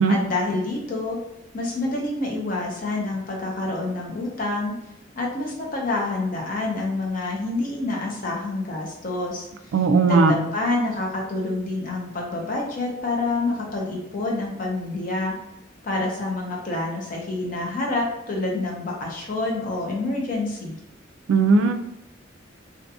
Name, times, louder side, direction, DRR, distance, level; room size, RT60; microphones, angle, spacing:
voice 1, 0.1-1.2 1.5-4.8 5.1-9.5 10.0-15.3 15.8-20.7, left 2 dB, 45° left, -2 dB, 0.7 m, -27 dB
voice 2, 9.7-10.3 21.3-21.7, right 3 dB, 75° right, 7 dB, 0.3 m, -17 dB
2.5 x 2.3 x 2.7 m, 0.85 s
head